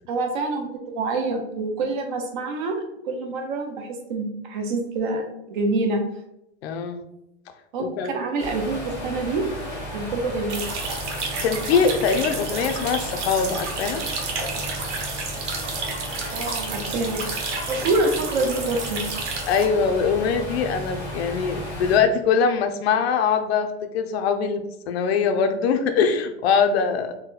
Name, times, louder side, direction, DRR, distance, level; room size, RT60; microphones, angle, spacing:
voice 1, 0.1-0.7 0.9-6.0 7.7-9.4 9.9-10.6 16.3-17.2 17.7-19.1, right 3 dB, 45° right, 4 dB, 0.7 m, -26 dB
voice 2, 6.6-7.0 7.8-8.1 11.1-14.0 19.5-27.2, left 6 dB, 65° left, 7 dB, 0.5 m, -22 dB
sound 1, 8.4-22.0, equal, 5° left, 0.3 m, -34 dB
sound 2, 10.5-19.6, right 4 dB, 90° right, 1.2 m, -31 dB
4.1 x 2.2 x 3.9 m, 0.84 s
supercardioid pair, 180°, 34 cm